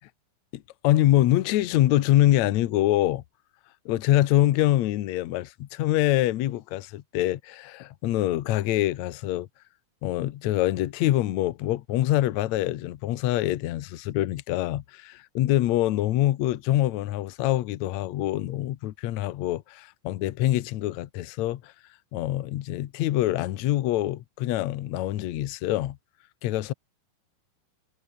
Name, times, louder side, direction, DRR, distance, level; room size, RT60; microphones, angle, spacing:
voice 1, 0.5-3.2 3.9-9.5 10.0-21.7 22.1-26.0 26.4-26.7, left 14 dB, 70° left, 2.1 m, -25 dB
omnidirectional pair, 3.6 m